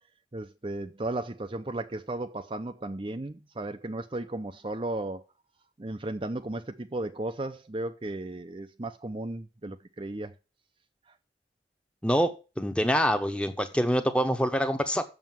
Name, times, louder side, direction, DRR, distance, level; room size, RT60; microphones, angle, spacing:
voice 1, 0.3-5.2 5.8-10.3, right 2 dB, 30° right, 0.6 m, -35 dB
voice 2, 12.6-15.0, equal, 5° left, 0.9 m, -25 dB
7.3 x 6.9 x 7.5 m
head